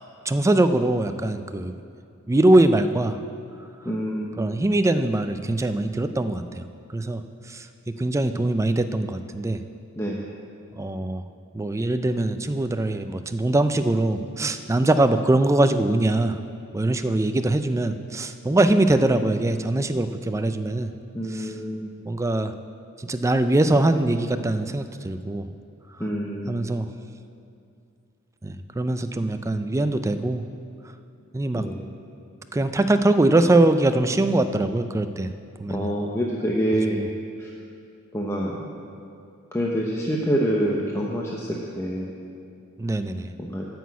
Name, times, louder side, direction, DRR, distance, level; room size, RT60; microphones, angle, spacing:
voice 1, 0.3-1.7 2.3-3.2 4.4-6.4 6.9-7.2 7.5-9.6 10.8-11.2 11.5-16.4 16.7-20.9 21.3-21.5 22.1-22.5 23.0-25.5 26.5-26.9 28.4-30.4 31.3-31.7 32.5-35.3 35.6-35.9 36.9-37.1 42.8-43.3, right 2 dB, 15° right, 9 dB, 0.4 m, -22 dB
voice 2, 3.8-4.6 10.0-10.2 21.1-21.9 26.0-26.7 31.5-31.9 35.7-37.0 37.4-37.5 38.1-38.8 39.5-42.1 43.4-43.7, equal, 15° left, -3 dB, 0.7 m, -27 dB
9.3 x 6.1 x 8.2 m, 2.5 s
head